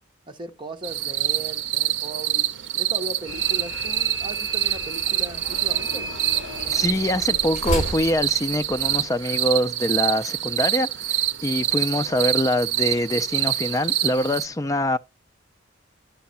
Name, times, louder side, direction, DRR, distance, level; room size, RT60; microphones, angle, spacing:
voice 1, 0.3-6.1, right 2 dB, 25° right, 1.1 m, -38 dB
sound 1, 0.8-14.5, right 14 dB, 70° right, 0.6 m, -26 dB
sound 2, 3.2-9.1, equal, 35° left, 4.8 m, -33 dB
voice 2, 6.7-15.0, left 1 dB, 15° left, 0.4 m, -24 dB
11.5 x 5.8 x 4.1 m
head